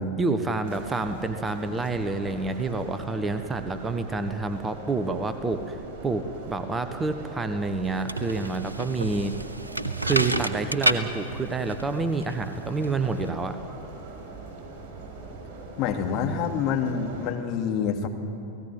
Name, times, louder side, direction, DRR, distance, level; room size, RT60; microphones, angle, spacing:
voice 1, 0.2-5.8 6.0-9.3 10.0-13.6, right 3 dB, 15° right, 9 dB, 1.3 m, -28 dB
sound 1, 0.6-17.3, right 3 dB, 35° right, 6.0 m, -42 dB
sound 2, 7.8-13.3, right 2 dB, 80° right, 1.1 m, -30 dB
voice 2, 15.8-18.1, left 6 dB, 40° left, 3 dB, 2.5 m, -27 dB
29.5 x 18.0 x 9.5 m, 2.9 s
figure-of-eight pair, 90°, 0 cm